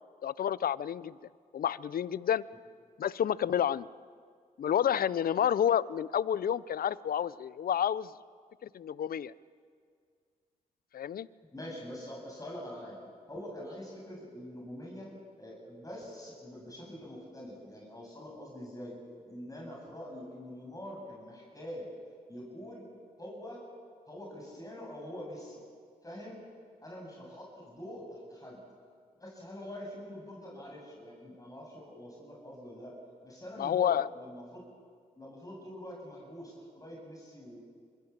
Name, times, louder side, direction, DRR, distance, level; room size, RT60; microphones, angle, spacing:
voice 1, 0.2-1.2 1.5-2.4 3.0-3.9 4.6-8.1 8.7-9.3 10.9-11.3 33.6-34.1, left 9 dB, 60° left, 20 dB, 0.6 m, -29 dB
voice 2, 11.5-13.0 13.3-15.1 15.4-19.0 19.2-21.9 22.3-22.9 23.2-23.6 24.1-25.6 26.0-26.4 26.8-28.6 29.2-32.9 33.2-34.6 35.2-37.6, equal, 20° left, -2 dB, 7.9 m, -45 dB
25.0 x 22.5 x 7.4 m, 2.1 s
supercardioid pair, 45°, 17 cm